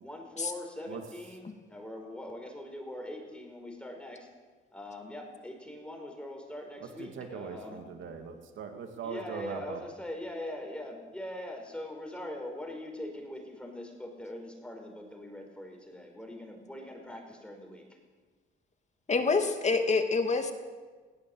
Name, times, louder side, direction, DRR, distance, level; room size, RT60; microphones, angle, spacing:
voice 1, 0.0-4.3 4.7-7.8 9.0-17.8, left 1 dB, 5° left, 2 dB, 5.0 m, -42 dB
voice 2, 7.0-9.8, right 6 dB, 75° right, 5 dB, 2.6 m, -40 dB
voice 3, 19.1-20.5, left 4 dB, 35° left, 5 dB, 2.7 m, -27 dB
19.5 x 18.0 x 8.0 m, 1.4 s
cardioid pair, 90°, 20 cm